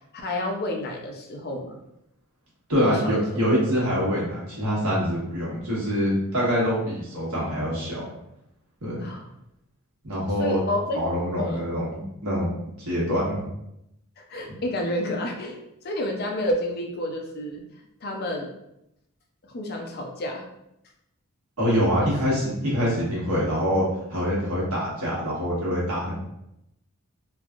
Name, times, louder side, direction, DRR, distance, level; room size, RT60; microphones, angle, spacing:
voice 1, 0.1-1.8 2.8-3.4 9.0-9.3 10.4-11.0 11.4-11.7 14.2-15.6 15.8-18.5 19.5-20.5 22.0-22.4, left 1 dB, 45° left, 2 dB, 0.5 m, -30 dB
voice 2, 2.7-8.1 8.8-9.1 10.0-10.6 10.9-12.5 12.8-13.4 21.6-26.1, equal, 85° right, -6 dB, 1.3 m, -25 dB
3.1 x 2.5 x 2.4 m, 0.83 s
head